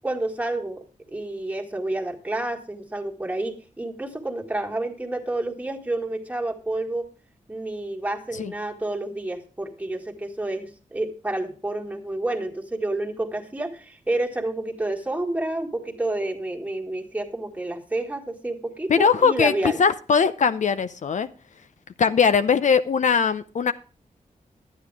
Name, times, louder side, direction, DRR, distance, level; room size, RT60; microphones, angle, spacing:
voice 1, 0.0-7.1 7.5-19.8, right 2 dB, 10° right, 1 dB, 1.9 m, -29 dB
voice 2, 18.9-21.3 22.0-23.7, left 6 dB, 65° left, 12 dB, 0.6 m, -20 dB
11.0 x 9.5 x 4.8 m, 0.35 s
wide cardioid pair, 90°, 14 cm